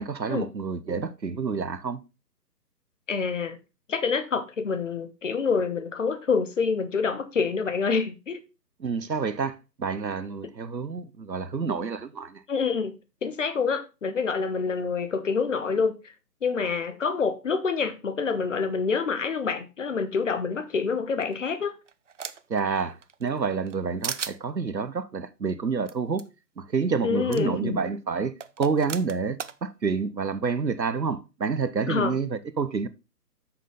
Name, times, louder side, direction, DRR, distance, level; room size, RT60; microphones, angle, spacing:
voice 1, 0.0-2.0 8.8-12.4 22.5-26.3 26.6-32.9, right 5 dB, 85° right, 1.0 m, -28 dB
voice 2, 3.1-3.6 3.9-8.4 12.5-12.9 13.2-16.0 16.4-21.7 27.0-27.8 31.9-32.1, left 5 dB, 50° left, 1.2 m, -27 dB
sound 1, 21.2-22.6 23.0-23.8 24.0-24.4 25.9-26.0 26.2-26.3 27.3-27.4 28.4-29.6, right 6 dB, 50° right, 0.6 m, -35 dB
7.7 x 6.5 x 3.7 m
figure-of-eight pair, 140°, 50 cm